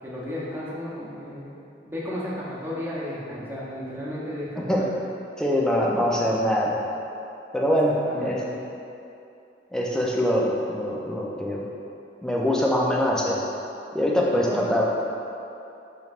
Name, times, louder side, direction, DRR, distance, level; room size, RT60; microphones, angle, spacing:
voice 1, 0.0-1.5 1.8-4.9 7.8-8.5 14.0-14.7, left 1 dB, 10° right, -8 dB, 0.7 m, -34 dB
voice 2, 5.4-6.8 7.5-7.9 8.2-8.4 9.7-11.6 12.2-13.4 13.9-14.9, equal, 5° left, -4 dB, 0.4 m, -23 dB
5.1 x 3.1 x 2.4 m, 2.7 s
head